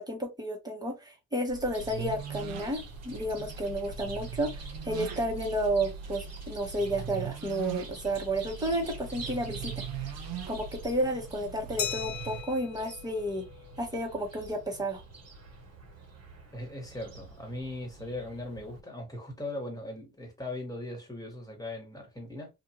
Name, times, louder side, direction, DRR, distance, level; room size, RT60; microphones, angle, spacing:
voice 1, 0.0-9.7 10.0-10.1 10.5-13.4 13.8-15.0, right 1 dB, 10° right, 1.2 m, -32 dB
sound 1, 1.5-12.4, right 7 dB, 75° right, 0.6 m, -40 dB
Chirp tweet, 1.6-18.8, right 3 dB, 45° right, 1.3 m, -48 dB
Glass, 11.8-14.2, left 8 dB, 70° left, 0.7 m, -38 dB
voice 2, 16.5-22.5, left 1 dB, 10° left, 1.6 m, -39 dB
2.6 x 2.5 x 2.8 m
cardioid pair, 85°, 35 cm